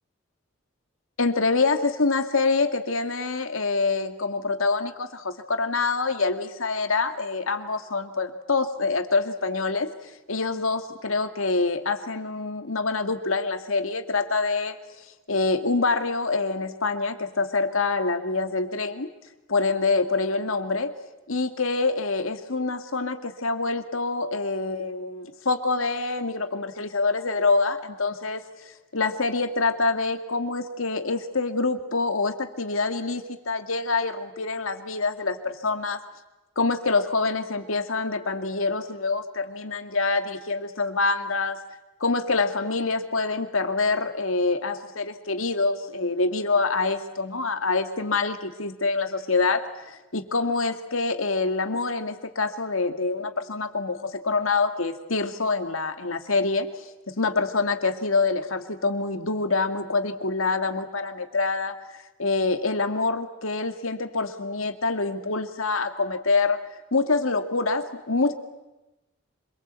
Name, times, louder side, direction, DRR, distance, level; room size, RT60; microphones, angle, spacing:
voice 1, 1.2-19.1 19.5-20.9 21.3-36.0 36.6-41.6 42.0-66.6 66.9-68.3, left 3 dB, 85° left, 7 dB, 2.1 m, -26 dB
26.0 x 23.5 x 8.2 m, 1.0 s
head